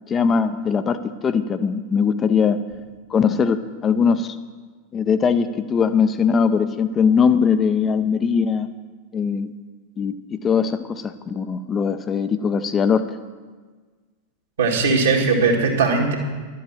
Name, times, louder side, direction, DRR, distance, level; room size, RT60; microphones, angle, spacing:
voice 1, 0.1-2.6 3.1-4.4 4.9-8.7 9.1-9.5 10.0-13.1, left 6 dB, 25° left, 10 dB, 0.6 m, -20 dB
voice 2, 14.6-16.2, right 4 dB, 65° right, -1 dB, 2.1 m, -19 dB
11.5 x 7.7 x 7.3 m, 1.4 s
figure-of-eight pair, 90°, 0 cm